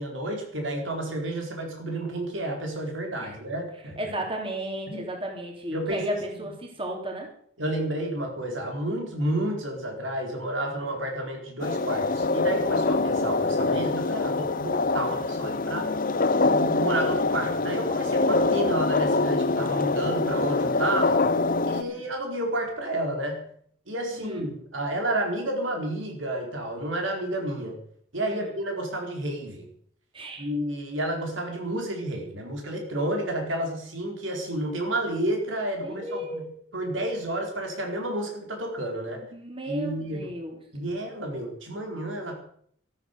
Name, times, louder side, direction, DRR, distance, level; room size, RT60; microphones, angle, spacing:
voice 1, 0.0-4.1 4.9-5.1 5.7-6.5 7.6-15.9 16.3-21.2 21.6-23.5 23.9-27.7 28.1-29.7 30.4-39.2 39.7-40.3 40.7-42.4, right 1 dB, 85° right, 2 dB, 4.6 m, -31 dB
voice 2, 4.0-7.3 21.8-22.0 24.1-24.4 28.2-28.5 30.1-30.4 35.8-37.0 39.3-40.6, right 1 dB, 30° right, 1 dB, 3.4 m, -34 dB
sound 1, 11.6-21.8, left 3 dB, 45° left, 0.9 m, -24 dB
13.5 x 13.0 x 6.8 m, 0.62 s
head